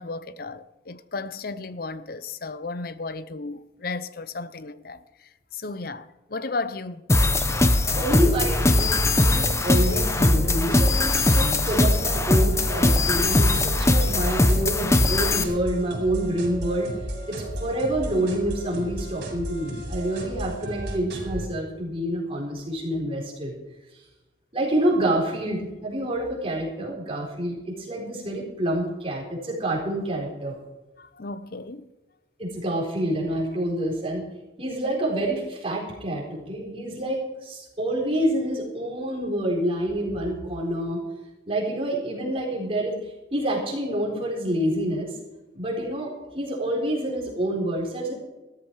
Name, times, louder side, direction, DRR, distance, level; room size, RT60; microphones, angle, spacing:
voice 1, 0.0-7.0 31.0-31.9, left 3 dB, 50° left, 0.7 m, -34 dB
sound 1, 7.1-15.4, left 2 dB, 15° left, 0.7 m, -20 dB
sound 2, 7.1-21.5, equal, 60° right, 4.8 m, -34 dB
voice 2, 7.9-16.9 17.3-23.5 24.5-30.6 32.4-34.2 34.6-41.0 41.5-43.0 43.3-45.1 45.5-48.1, right 1 dB, 30° right, 4.1 m, -27 dB
15.0 x 13.5 x 4.7 m
head